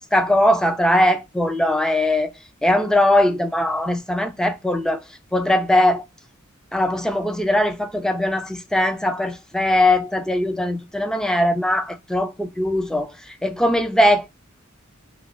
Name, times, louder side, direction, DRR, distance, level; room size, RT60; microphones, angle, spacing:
voice 1, 0.1-2.3 2.6-5.0 5.3-6.0 6.7-14.3, left 1 dB, 5° left, 0.3 m, -20 dB
2.8 x 2.3 x 3.7 m
head